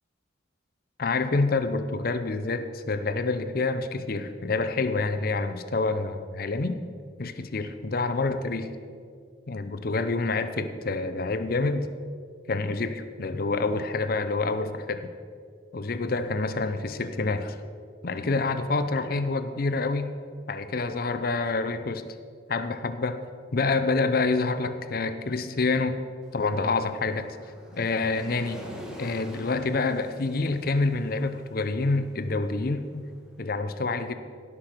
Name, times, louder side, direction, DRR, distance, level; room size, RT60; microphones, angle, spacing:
voice 1, 1.0-6.8 7.2-8.8 9.5-11.9 12.5-15.1 15.7-17.6 18.0-20.1 20.5-22.1 22.5-23.2 23.5-26.0 26.3-27.3 27.7-28.7 29.0-33.1 33.4-34.1, left 3 dB, 50° left, 10 dB, 0.6 m, -27 dB
Waves surf, 26.2-33.3, equal, 5° right, 1.4 m, -46 dB
16.5 x 6.1 x 5.0 m, 2.2 s
head